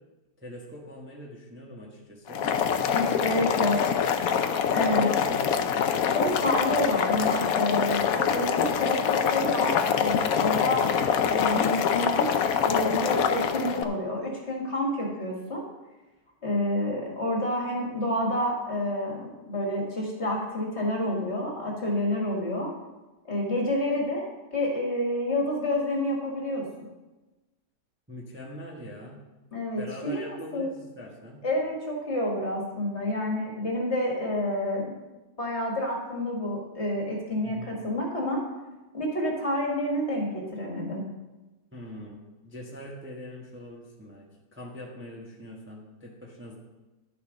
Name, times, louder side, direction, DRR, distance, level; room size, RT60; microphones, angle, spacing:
voice 1, 0.4-2.5 2.8-3.8 4.9-5.8 10.4-10.9 28.1-29.2 29.8-31.4 37.4-37.8 41.7-42.2 42.4-46.6, left 1 dB, 10° right, -3 dB, 1.2 m, -42 dB
Boiling, 2.3-13.8, left 7 dB, 65° left, 1.0 m, -25 dB
voice 2, 2.9-3.8 4.7-5.1 6.1-10.8 11.2-15.6 16.4-22.7 23.3-24.2 24.5-26.7 29.5-30.7 31.4-34.9 35.4-38.4 38.9-41.1, left 1 dB, 40° left, -1 dB, 2.1 m, -29 dB
11.0 x 6.8 x 5.2 m, 1.1 s
omnidirectional pair, 1.8 m